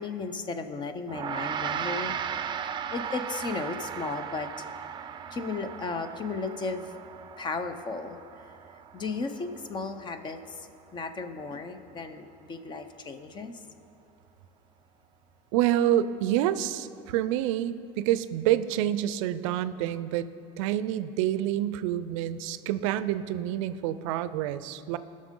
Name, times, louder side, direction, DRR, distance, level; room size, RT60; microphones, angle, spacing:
voice 1, 0.0-2.1 2.9-4.5 5.3-6.9 7.4-8.2 8.9-13.6, left 4 dB, 30° left, 9 dB, 0.7 m, -35 dB
Gong, 1.1-10.6, right 8 dB, 30° right, 0.5 m, -37 dB
voice 2, 15.5-20.3 20.6-25.0, right 12 dB, 85° right, 14 dB, 0.4 m, -27 dB
17.0 x 6.4 x 3.7 m, 2.5 s
supercardioid pair, 115°, 16 cm